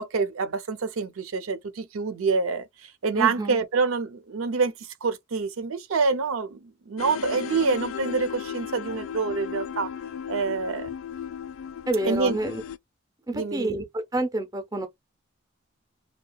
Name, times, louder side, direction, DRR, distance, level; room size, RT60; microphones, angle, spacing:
voice 1, 0.0-2.6 3.0-4.7 5.0-6.6 6.9-9.9 10.3-10.9 12.0-12.4 13.3-13.8, right 4 dB, 90° right, 0.5 m, -26 dB
voice 2, 3.1-3.6 11.9-12.6 13.3-14.9, right 1 dB, 15° right, 0.5 m, -28 dB
sound 1, 7.0-12.8, left 8 dB, 80° left, 0.3 m, -35 dB
2.8 x 2.2 x 2.2 m
head